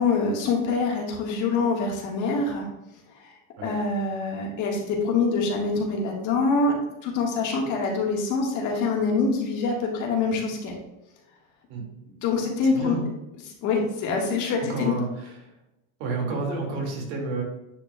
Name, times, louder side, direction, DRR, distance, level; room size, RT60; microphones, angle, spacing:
voice 1, 0.0-2.7 3.2-3.3 3.6-6.7 7.0-10.7 12.2-13.0 13.6-14.9, left 4 dB, 45° left, 0 dB, 1.6 m, -25 dB
voice 2, 12.7-13.0 14.7-15.5 16.0-17.4, right 3 dB, 60° right, 0 dB, 2.3 m, -30 dB
9.8 x 4.2 x 2.3 m, 0.89 s
supercardioid pair, 150°, 42 cm